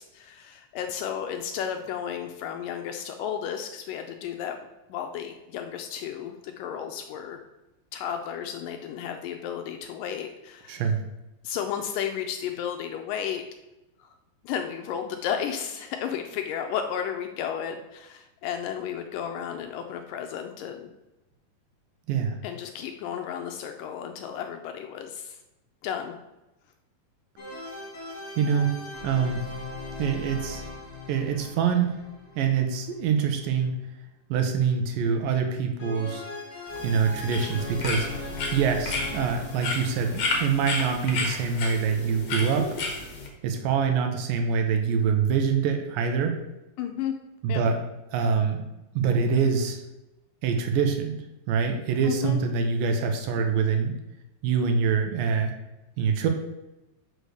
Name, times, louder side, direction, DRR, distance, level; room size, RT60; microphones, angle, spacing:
voice 1, 0.0-4.6 4.9-7.4 7.9-10.8 11.4-13.4 14.0-14.1 14.4-20.9 22.4-25.4 25.8-26.2 46.8-47.1 47.5-47.6 52.0-52.4, left 8 dB, 80° left, 5 dB, 2.0 m, -33 dB
voice 2, 10.7-11.0 22.1-22.4 28.4-28.7 29.0-29.4 30.0-30.6 31.1-31.9 32.4-33.8 34.3-36.2 36.8-38.1 38.5-42.7 43.4-46.3 47.4-47.8 48.1-48.6 49.0-49.8 50.4-51.1 51.5-53.9 54.4-55.5 56.0-56.3, right 6 dB, 75° right, 4 dB, 2.4 m, -25 dB
sound 1, 27.4-33.3 35.8-41.6, left 3 dB, 40° left, 3.1 m, -39 dB
sound 2, 36.7-43.3, left 3 dB, 55° left, 2.1 m, -32 dB
6.3 x 5.0 x 6.4 m, 0.97 s
omnidirectional pair, 4.2 m